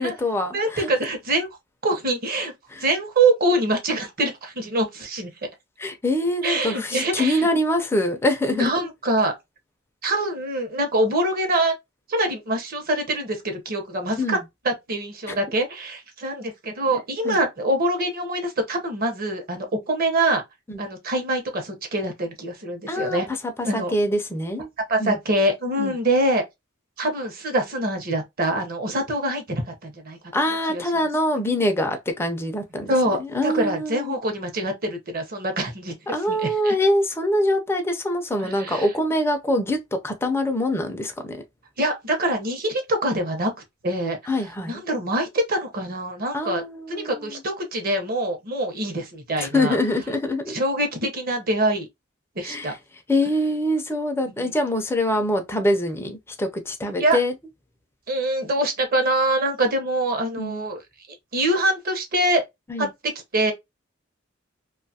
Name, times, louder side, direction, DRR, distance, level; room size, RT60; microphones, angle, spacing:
voice 1, 0.0-0.9 2.7-2.8 5.8-8.7 14.2-14.4 15.3-15.4 17.2-17.4 20.7-20.8 22.9-24.7 25.0-25.2 25.8-25.9 30.3-34.1 36.1-39.8 40.0-41.4 44.3-44.8 46.3-47.4 49.4-50.6 52.4-52.7 53.1-57.3 60.4-60.6 62.7-62.9, left 1 dB, 10° left, 0.4 m, -24 dB
voice 2, 0.5-1.5 1.8-2.5 2.8-5.3 6.4-7.5 8.5-9.3 10.0-11.7 12.1-14.4 14.6-20.4 20.8-23.3 23.6-23.9 24.9-26.4 27.0-30.2 30.7-30.8 32.9-36.7 38.4-38.9 41.8-43.5 43.8-44.2 44.7-46.6 46.9-49.8 50.5-51.9 52.4-52.7 54.3-54.5 57.0-57.2 58.1-60.8 61.3-62.4 62.8-62.9 63.3-63.5, right 1 dB, 45° right, 0.8 m, -24 dB
2.6 x 2.3 x 2.7 m
head